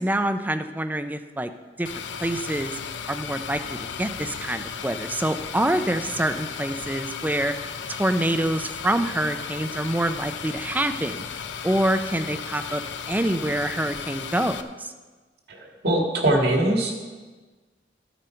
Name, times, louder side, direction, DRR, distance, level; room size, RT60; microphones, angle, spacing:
voice 1, 0.0-1.5 1.8-1.9 2.2-2.8 3.1-7.5 8.0-12.8 13.1-14.9, right 1 dB, 10° right, 9 dB, 0.5 m, -26 dB
sound 1, 1.9-14.6, left 6 dB, 90° left, 0.7 m, -35 dB
voice 2, 15.5-16.9, right 1 dB, 60° right, 1 dB, 1.9 m, -22 dB
13.5 x 9.2 x 4.5 m, 1.3 s
head